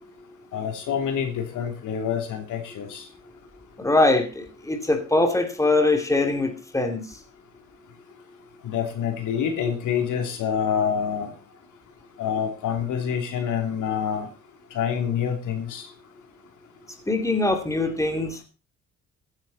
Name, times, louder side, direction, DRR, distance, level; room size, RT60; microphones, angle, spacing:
voice 1, 0.5-3.0 8.6-11.3 12.2-14.3 14.7-15.9, left 8 dB, 80° left, 5 dB, 2.9 m, -27 dB
voice 2, 3.8-7.0 17.1-18.4, left 2 dB, 10° left, 5 dB, 2.6 m, -22 dB
15.0 x 9.7 x 4.1 m, 0.31 s
cardioid pair, 90°, 30 cm